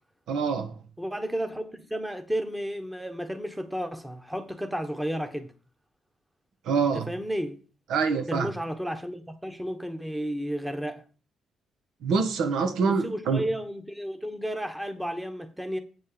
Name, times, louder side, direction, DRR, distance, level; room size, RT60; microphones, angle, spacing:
voice 1, 0.3-0.7 6.6-7.1 7.9-8.5 12.0-13.4, right 5 dB, 80° right, 1.4 m, -25 dB
voice 2, 1.0-5.5 7.1-7.6 8.3-11.0 12.8-15.8, equal, 5° right, 1.2 m, -32 dB
8.5 x 4.3 x 6.9 m
cardioid pair, 90°, 0 cm